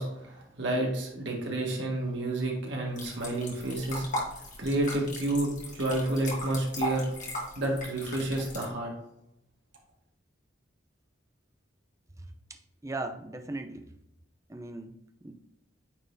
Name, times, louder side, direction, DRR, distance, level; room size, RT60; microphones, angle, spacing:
voice 1, 0.0-4.1 4.6-7.1 7.6-8.9, right 1 dB, 65° right, -1 dB, 1.7 m, -30 dB
sound 1, 3.0-8.7, left 1 dB, 40° left, 1.9 m, -37 dB
voice 2, 12.8-13.8 14.5-14.9 15.2-15.3, right 2 dB, 15° right, 6 dB, 0.5 m, -37 dB
8.9 x 4.0 x 2.7 m, 0.84 s
head